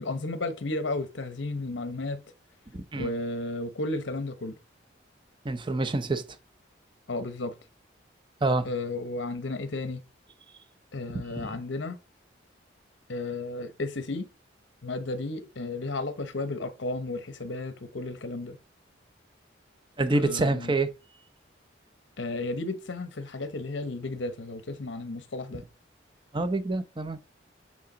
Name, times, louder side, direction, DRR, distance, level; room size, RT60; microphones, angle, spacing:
voice 1, 0.0-2.2 3.0-4.6 7.1-7.5 8.6-10.0 10.9-12.0 13.1-14.3 14.8-18.6 20.1-20.7 22.2-25.6, left 2 dB, 70° left, 0.8 m, -33 dB
voice 2, 2.7-3.1 5.4-6.2 8.4-8.7 11.3-11.6 20.0-20.9 26.3-27.2, right 2 dB, 25° right, 0.6 m, -27 dB
8.5 x 4.7 x 3.9 m
head